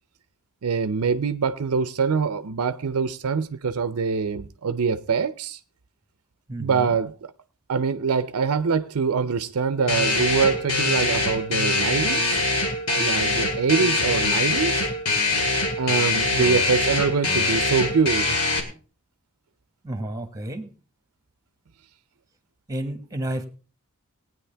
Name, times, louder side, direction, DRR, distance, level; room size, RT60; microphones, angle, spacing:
voice 1, 0.6-5.6 6.6-7.3 7.7-12.4 12.9-14.9 15.8-18.4, right 5 dB, 70° right, 0.6 m, -24 dB
voice 2, 6.5-7.0 16.4-16.5 19.8-20.7 22.7-23.5, right 1 dB, 15° right, 1.5 m, -31 dB
sound 1, 9.9-18.6, left 2 dB, 90° left, 2.3 m, -23 dB
19.0 x 9.2 x 3.4 m
head